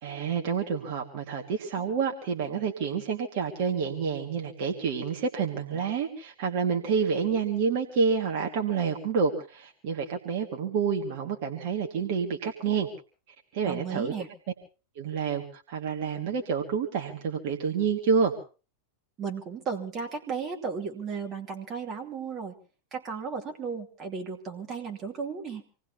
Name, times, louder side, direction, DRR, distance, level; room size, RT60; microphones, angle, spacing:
voice 1, 0.0-12.9 13.5-14.1 15.0-18.4, right 6 dB, 50° right, 2 dB, 2.0 m, -28 dB
voice 2, 13.7-14.3 19.2-22.5 22.9-25.6, right 5 dB, 30° right, 2 dB, 2.6 m, -35 dB
26.5 x 18.5 x 2.9 m, 0.36 s
figure-of-eight pair, 90°, 0 cm